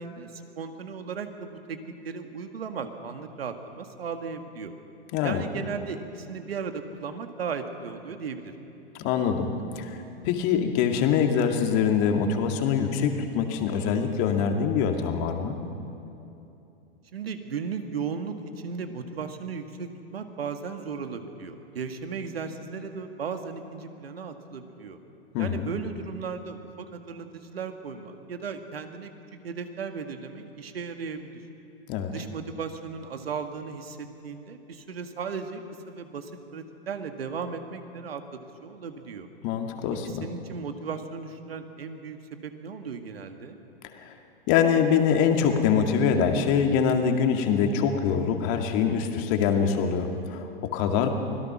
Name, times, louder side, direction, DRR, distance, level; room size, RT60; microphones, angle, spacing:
voice 1, 0.0-1.8 2.0-4.7 5.2-8.5 17.1-25.0 25.4-29.1 29.4-31.4 32.1-35.6 35.9-39.3 40.0-43.6, right 5 dB, 75° right, 7 dB, 1.9 m, -36 dB
voice 2, 5.1-5.4 8.9-9.5 9.7-15.6 25.3-25.7 31.9-32.1 39.4-40.2 44.0-44.2 44.5-51.1, left 7 dB, 40° left, 4 dB, 2.2 m, -24 dB
25.0 x 17.5 x 6.1 m, 2.8 s
hypercardioid pair, 115°, 30 cm